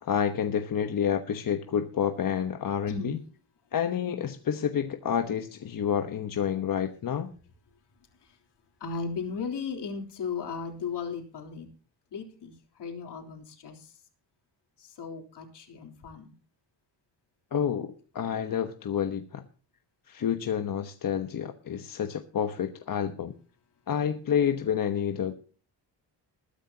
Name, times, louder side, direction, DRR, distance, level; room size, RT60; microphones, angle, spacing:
voice 1, 0.0-3.2 3.7-7.3 17.5-19.4 20.1-23.3 23.9-25.3, left 8 dB, 50° left, 6 dB, 1.1 m, -29 dB
voice 2, 2.9-3.2 8.8-11.7 12.1-13.9 14.8-16.3, left 5 dB, 70° left, 2 dB, 3.6 m, -36 dB
21.0 x 10.0 x 2.9 m, 0.40 s
cardioid pair, 125°, 42 cm